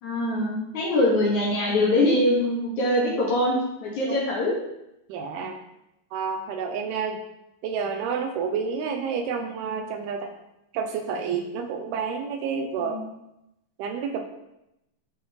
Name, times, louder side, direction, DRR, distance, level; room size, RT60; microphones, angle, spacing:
voice 1, 0.0-4.5 12.8-13.0, left 1 dB, 55° left, -4 dB, 2.6 m, -23 dB
voice 2, 5.1-5.6 6.1-7.2 7.6-10.3 10.7-13.0 13.8-14.3, right 6 dB, 80° right, 5 dB, 2.5 m, -29 dB
14.5 x 4.9 x 3.2 m, 0.86 s
omnidirectional pair, 4.8 m